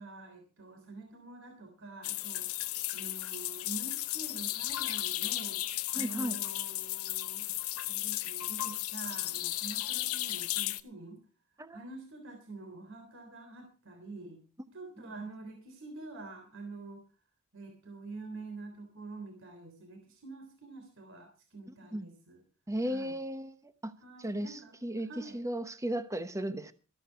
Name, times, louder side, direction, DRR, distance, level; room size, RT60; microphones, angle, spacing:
voice 1, 0.0-7.5 7.8-11.2 11.7-14.4 14.7-17.0 17.5-22.4 22.9-23.1 24.0-24.7 25.1-25.4, right 3 dB, 60° right, 3.4 m, -46 dB
sound 1, 2.0-10.8, left 16 dB, 90° left, 0.8 m, -35 dB
voice 2, 5.9-6.4 11.6-11.8 21.9-22.1 22.7-23.9 24.2-26.7, right 1 dB, 15° right, 1.0 m, -35 dB
14.0 x 13.0 x 4.6 m
head